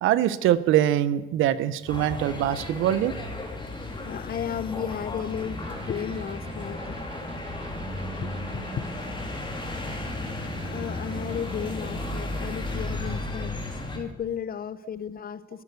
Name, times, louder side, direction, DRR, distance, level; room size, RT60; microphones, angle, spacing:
voice 1, 0.0-3.3, right 12 dB, 90° right, 16 dB, 0.8 m, -23 dB
sound 1, 1.9-14.0, left 2 dB, 25° left, 3.5 m, -34 dB
voice 2, 4.0-7.0 8.2-8.9 10.6-15.6, left 8 dB, 50° left, 16 dB, 0.8 m, -34 dB
sound 2, 5.5-13.2, right 3 dB, 30° right, 2.1 m, -41 dB
13.0 x 11.0 x 8.2 m, 1.0 s
cardioid pair, 90°, 20 cm